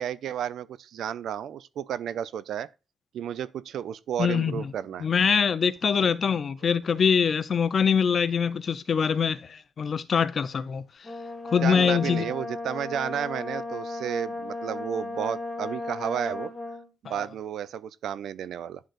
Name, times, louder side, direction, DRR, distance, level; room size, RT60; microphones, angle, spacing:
voice 1, 0.0-2.7 3.1-5.1 6.0-6.1 11.6-16.5 17.0-18.8, right 9 dB, 75° right, 0.4 m, -32 dB
voice 2, 4.2-4.7 5.0-10.8 11.5-12.3 17.1-17.2, left 6 dB, 45° left, 0.5 m, -24 dB
Brass instrument, 11.0-16.9, left 2 dB, 15° left, 1.5 m, -35 dB
11.0 x 3.9 x 2.5 m
cardioid pair, 130°, 0 cm